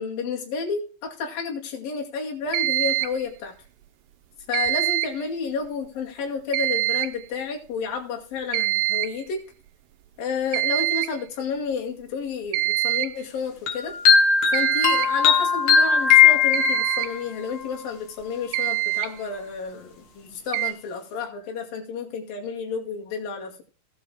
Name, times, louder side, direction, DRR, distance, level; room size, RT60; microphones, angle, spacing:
voice 1, 0.0-3.5 4.5-9.4 10.2-13.9 14.5-23.6, left 5 dB, 85° left, 0 dB, 4.0 m, -31 dB
sound 1, 2.5-3.2 4.5-5.2 6.5-7.2 8.5-9.2 10.5-11.2 12.5-13.2 14.5-15.2 16.5-17.1 18.2-18.3 18.5-19.1 20.5-20.7, right 18 dB, 75° right, 2.2 m, -24 dB
sound 2, 13.7-17.2, left 6 dB, 65° left, 2.6 m, -18 dB
18.0 x 8.9 x 2.2 m, 0.40 s
omnidirectional pair, 3.9 m